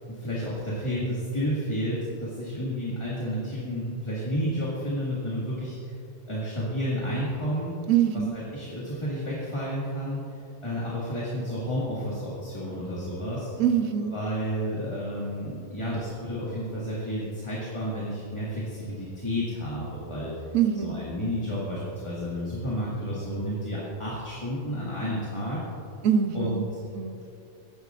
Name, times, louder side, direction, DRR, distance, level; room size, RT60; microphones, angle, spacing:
voice 1, 0.1-5.9 6.3-7.7 8.3-10.2 10.6-13.5 14.1-20.3 20.8-25.6 26.3-26.8, equal, 20° left, -8 dB, 1.9 m, -31 dB
voice 2, 7.9-8.3 13.6-14.2 20.5-21.1 26.0-26.7 26.9-27.2, right 8 dB, 80° right, 7 dB, 1.2 m, -24 dB
16.0 x 11.0 x 2.5 m, 2.6 s
omnidirectional pair, 1.4 m